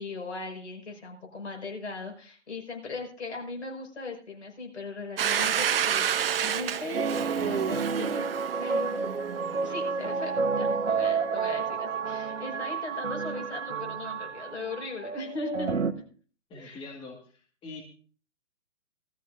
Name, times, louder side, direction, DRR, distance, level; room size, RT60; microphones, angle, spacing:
voice 1, 0.0-6.1 6.4-9.1 9.6-15.7 16.5-16.9, left 3 dB, 65° left, 1 dB, 5.3 m, -38 dB
Domestic sounds home sounds, 5.2-9.8, right 9 dB, 50° right, 1.0 m, -29 dB
sound 1, 6.9-15.9, right 5 dB, 85° right, 1.1 m, -30 dB
voice 2, 16.5-17.2 17.6-17.8, left 3 dB, 15° left, 0 dB, 2.0 m, -42 dB
19.0 x 13.5 x 2.6 m, 0.42 s
figure-of-eight pair, 130°, 36 cm